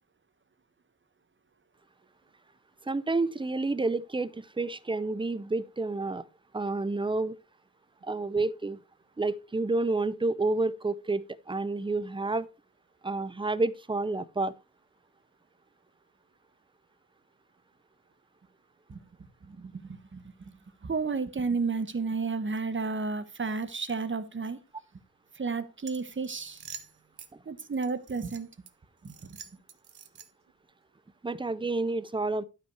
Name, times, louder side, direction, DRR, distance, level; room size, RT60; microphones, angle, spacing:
voice 1, 2.9-6.2 6.5-7.4 8.0-8.8 9.2-12.5 13.0-14.5 31.2-32.4, right 3 dB, 15° right, 0.5 m, -29 dB
voice 2, 19.4-20.5 20.8-24.6 25.3-26.6 27.5-28.5 29.0-29.4, right 4 dB, 30° right, 1.0 m, -32 dB
sound 1, 25.8-27.3 27.8-28.7 29.0-30.5, right 7 dB, 85° right, 1.3 m, -47 dB
12.0 x 5.5 x 4.5 m
wide cardioid pair, 155°, 38 cm